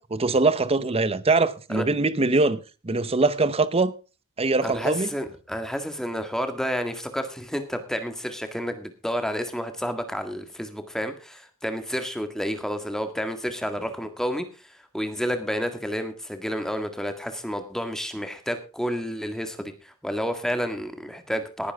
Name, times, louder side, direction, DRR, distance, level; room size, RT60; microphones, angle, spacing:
voice 1, 0.0-2.6 2.8-3.9 4.4-5.1, right 3 dB, 25° right, 0.8 m, -22 dB
voice 2, 4.6-21.7, equal, ahead, 1.7 m, -30 dB
18.5 x 10.0 x 3.6 m
head